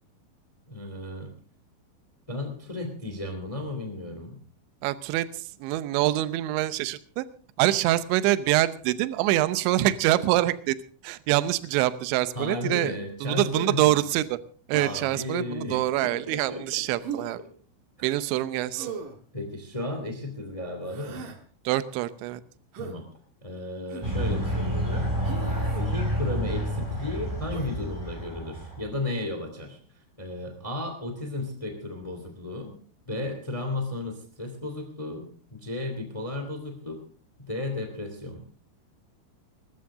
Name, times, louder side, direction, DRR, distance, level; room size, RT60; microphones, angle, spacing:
voice 1, 0.7-1.3 2.3-4.4 12.3-14.0 14.7-16.8 17.4-17.5 18.0-18.1 19.3-21.3 22.8-23.1 23.4-25.3 25.6-29.8 30.2-32.8 33.1-37.0 37.4-38.4, left 2 dB, 50° left, 6 dB, 0.4 m, -34 dB
voice 2, 4.8-7.2 7.6-10.8 11.0-14.4 14.7-17.4 18.0-18.9 21.7-22.4, right 15 dB, 80° right, 14 dB, 2.9 m, -25 dB
Human voice, 14.7-15.2 17.0-17.3 18.8-19.2 20.8-21.4 22.7-23.0 23.9-24.2 25.2-25.9 27.5-27.7, right 6 dB, 60° right, 2.3 m, -38 dB
sound 1, 24.0-28.9, equal, 10° right, 4.0 m, -29 dB
21.5 x 14.0 x 3.7 m, 0.42 s
omnidirectional pair, 5.7 m